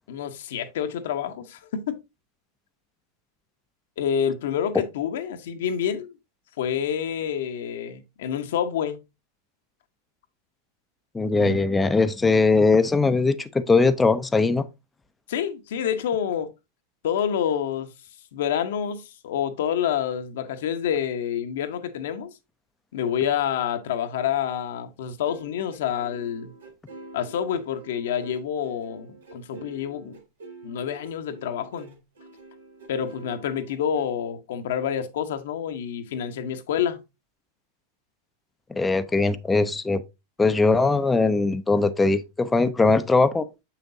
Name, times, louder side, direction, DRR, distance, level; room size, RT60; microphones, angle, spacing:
voice 1, 0.1-2.0 4.0-6.1 6.6-9.0 11.3-11.6 15.3-16.5 17.0-17.9 18.3-22.3 22.9-26.5 27.1-30.2 30.6-32.0 32.9-37.0, left 9 dB, 70° left, 0.9 m, -28 dB
voice 2, 11.1-14.7 38.7-40.0 40.4-43.5, left 3 dB, 10° left, 0.5 m, -20 dB
sound 1, 25.2-34.0, right 2 dB, 85° right, 1.8 m, -46 dB
6.7 x 5.8 x 2.7 m
hypercardioid pair, 100°, 0 cm